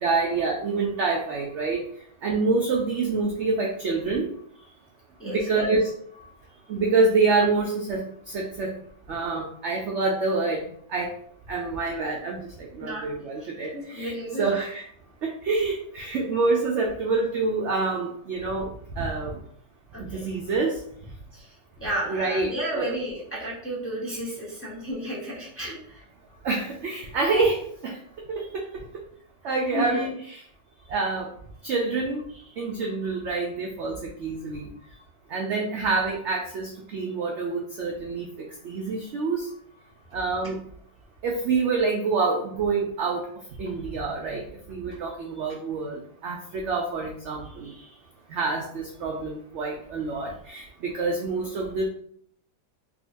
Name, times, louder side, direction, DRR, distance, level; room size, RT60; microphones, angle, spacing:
voice 1, 0.0-1.8 2.2-4.3 5.2-5.9 6.7-8.1 8.3-8.8 9.1-11.1 11.5-14.8 15.2-18.7 19.0-19.4 20.0-20.7 22.1-22.9 26.4-28.0 28.3-28.6 29.4-30.4 30.9-31.3 31.6-32.2 32.6-33.9 34.2-34.7 35.3-38.3 38.6-39.5 40.1-40.6 41.2-43.2 43.6-44.4 44.7-47.7 48.3-51.9, right 3 dB, 70° right, -1 dB, 0.6 m, -27 dB
voice 2, 5.2-5.7 12.8-13.0 13.7-14.5 19.9-20.3 21.3-21.5 21.8-26.0 28.4-28.5 29.7-30.0 47.6-48.0, equal, 10° left, -6 dB, 0.8 m, -33 dB
3.6 x 2.8 x 2.6 m, 0.64 s
omnidirectional pair, 1.7 m